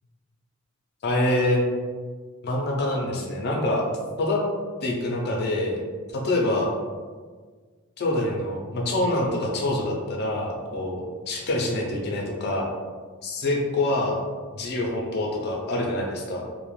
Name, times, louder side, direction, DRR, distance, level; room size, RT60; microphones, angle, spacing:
voice 1, 1.0-1.6 2.4-3.9 4.2-4.4 4.8-5.8 6.1-6.7 8.0-11.0 11.3-12.7 13.2-14.2 14.5-16.4, left 1 dB, 50° left, -1 dB, 0.5 m, -25 dB
2.3 x 2.1 x 3.1 m, 1.5 s
head